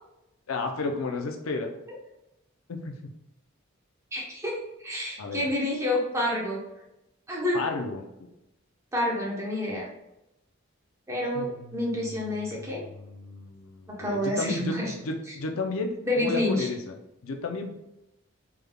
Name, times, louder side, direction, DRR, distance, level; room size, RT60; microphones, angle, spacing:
voice 1, 0.5-1.7 2.7-3.1 5.2-5.5 7.5-8.3 11.3-12.2 12.5-12.6 12.9-16.9 17.2-17.7, left 3 dB, 80° left, 3 dB, 0.5 m, -33 dB
voice 2, 4.1-6.6 7.3-7.6 8.9-9.9 11.1-12.8 14.0-14.9 16.0-16.7, left 1 dB, 15° right, -4 dB, 0.8 m, -28 dB
3.5 x 3.4 x 2.2 m, 0.91 s
head